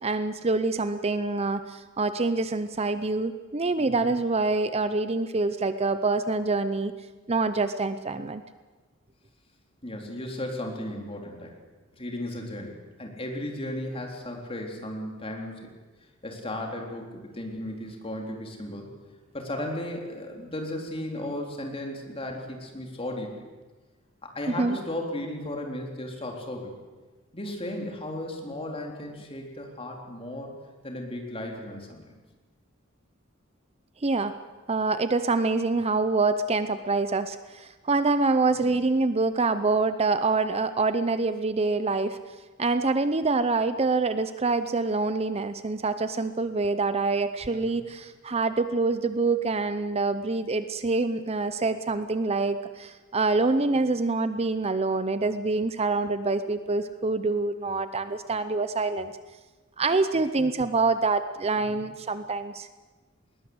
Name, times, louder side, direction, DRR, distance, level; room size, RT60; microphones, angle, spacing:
voice 1, 0.0-6.9 7.3-8.4 24.5-24.8 34.0-34.4 34.7-42.2 42.6-59.1 59.8-62.7, right 3 dB, 30° right, 11 dB, 0.7 m, -26 dB
voice 2, 9.8-11.5 12.0-15.7 16.2-18.9 19.3-23.4 24.2-26.7 27.3-30.5 30.8-32.2 38.6-38.7 47.5-47.8 61.7-61.8, left 1 dB, 30° left, 1 dB, 3.7 m, -35 dB
20.5 x 19.5 x 8.0 m, 1.3 s
head